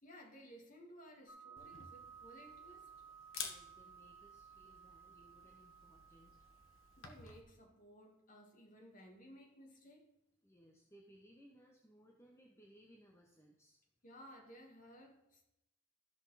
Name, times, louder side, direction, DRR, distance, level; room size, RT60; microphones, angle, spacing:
voice 1, 0.0-2.9 7.0-10.1 14.0-15.4, equal, 40° left, 1 dB, 2.0 m, -58 dB
sound 1, 1.3-7.4, right 6 dB, 25° right, 3.6 m, -58 dB
Camera, 1.6-7.4, left 6 dB, 80° left, 1.4 m, -52 dB
voice 2, 3.4-6.3 10.4-13.8, equal, 15° left, 0 dB, 0.9 m, -64 dB
13.5 x 6.1 x 4.1 m, 0.85 s
head